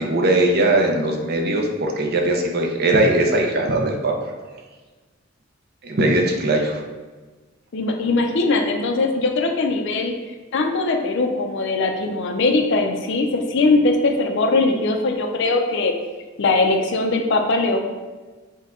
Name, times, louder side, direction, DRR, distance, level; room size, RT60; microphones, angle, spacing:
voice 1, 0.0-4.1 5.8-6.8, right 1 dB, 50° right, 1 dB, 0.6 m, -20 dB
voice 2, 7.7-10.1 10.5-15.9 16.4-17.8, left 3 dB, 65° left, 4 dB, 0.5 m, -20 dB
5.3 x 2.3 x 3.6 m, 1.3 s
head